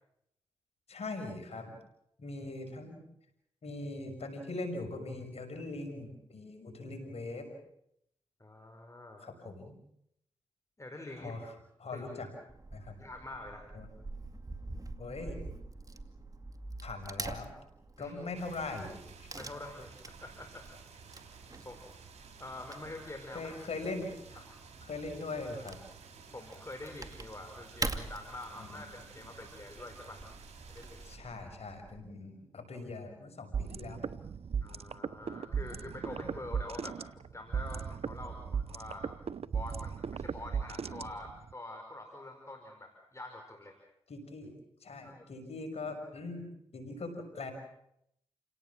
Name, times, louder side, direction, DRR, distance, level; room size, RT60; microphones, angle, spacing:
voice 1, 0.9-1.7 2.2-3.0 3.6-7.5 9.2-9.8 11.2-11.5 11.8-12.3 12.7-13.0 13.7-13.9 15.0-15.4 16.8-17.5 18.0-19.3 23.3-24.5 24.8-25.8 28.6-28.8 31.0-34.1 44.1-44.5 44.8-46.5 46.7-47.5, left 2 dB, 70° left, 6 dB, 6.4 m, -41 dB
voice 2, 8.4-9.2 10.8-11.3 11.9-12.0 13.0-13.6 18.0-18.1 19.3-20.7 21.6-21.8 22.4-23.5 26.3-30.3 30.7-31.2 34.6-39.1 39.5-43.8 45.0-45.2, left 2 dB, 25° left, 4 dB, 4.8 m, -46 dB
Wood / Tearing, 12.5-32.1, right 2 dB, 30° right, 2.4 m, -45 dB
sound 1, 18.3-31.2, right 5 dB, 80° right, 5.3 m, -53 dB
sound 2, 33.5-41.5, right 6 dB, 65° right, 0.8 m, -37 dB
29.0 x 18.0 x 7.5 m, 0.77 s
supercardioid pair, 40°, 11 cm